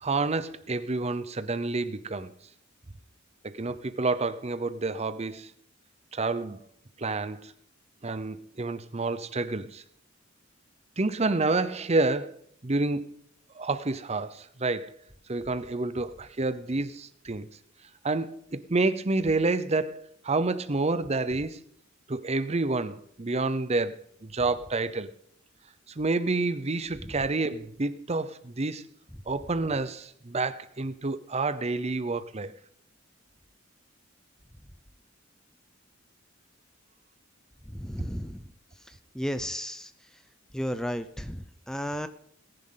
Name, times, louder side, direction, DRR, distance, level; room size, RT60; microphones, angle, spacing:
voice 1, 0.0-2.3 3.4-5.5 6.1-6.6 7.0-7.5 8.0-9.8 11.0-13.1 13.5-14.9 15.3-17.5 18.0-21.6 22.1-25.1 25.9-28.9 29.3-32.5, right 3 dB, 30° right, 0.7 m, -29 dB
voice 2, 37.7-38.4 38.9-39.9 40.5-42.1, equal, 5° left, 0.5 m, -34 dB
18.5 x 10.5 x 3.9 m
head